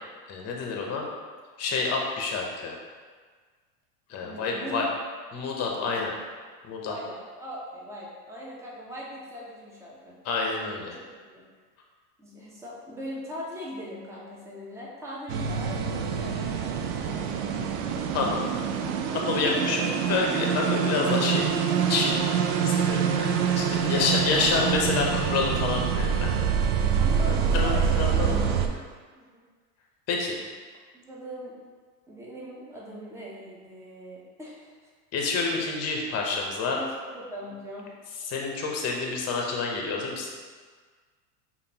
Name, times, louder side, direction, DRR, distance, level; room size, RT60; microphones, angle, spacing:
voice 1, 0.3-1.1 1.6-2.8 4.1-4.9 5.3-6.1 6.6-6.9 10.2-11.0 18.1-18.4 19.1-21.5 21.9-22.2 22.7-26.8 27.3-28.6 30.1-30.3 35.1-36.8 38.3-40.3, left 4 dB, 30° left, 0 dB, 0.8 m, -28 dB
voice 2, 4.2-4.8 5.7-6.0 6.8-10.2 11.0-11.4 12.2-17.5 19.4-19.9 23.8-25.0 27.0-28.8 29.1-29.4 30.9-31.6 32.1-34.9 36.8-36.9 37.1-37.9, equal, 5° right, -5 dB, 0.7 m, -40 dB
sound 1, 15.3-28.7, right 7 dB, 55° right, 0.5 m, -26 dB
5.0 x 2.6 x 2.8 m, 1.5 s
hypercardioid pair, 105°, 49 cm